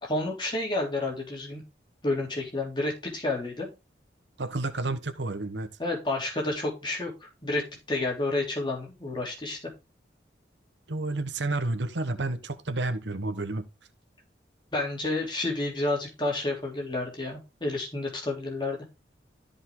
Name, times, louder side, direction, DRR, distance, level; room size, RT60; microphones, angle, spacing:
voice 1, 0.0-1.6 2.0-3.7 5.8-9.7 14.7-18.8, left 2 dB, 25° left, 3.3 m, -30 dB
voice 2, 4.4-5.7 10.9-13.7, right 2 dB, 90° right, 1.1 m, -30 dB
13.0 x 5.2 x 3.8 m
head